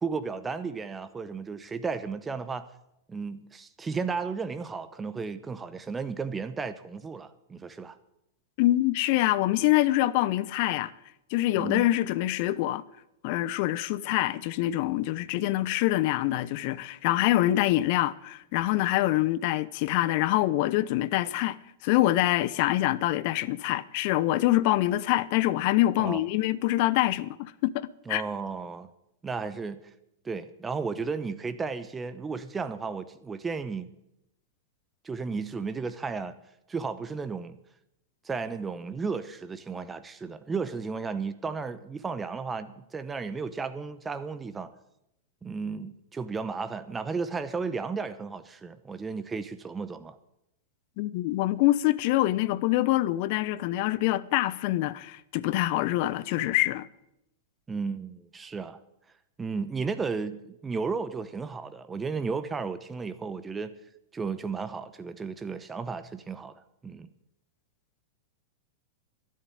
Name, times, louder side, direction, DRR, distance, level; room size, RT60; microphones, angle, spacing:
voice 1, 0.0-2.6 3.1-8.0 11.6-11.9 26.0-26.2 28.1-28.9 29.2-29.9 30.2-33.9 35.0-36.4 36.7-37.6 38.2-44.7 45.4-50.2 57.7-58.8 59.4-63.7 64.1-67.1, right 5 dB, 15° right, 0.8 m, -34 dB
voice 2, 8.6-10.9 11.3-12.8 13.2-28.2 51.0-56.9, left 16 dB, 50° left, 0.7 m, -25 dB
12.5 x 10.5 x 8.6 m
figure-of-eight pair, 95°, 0 cm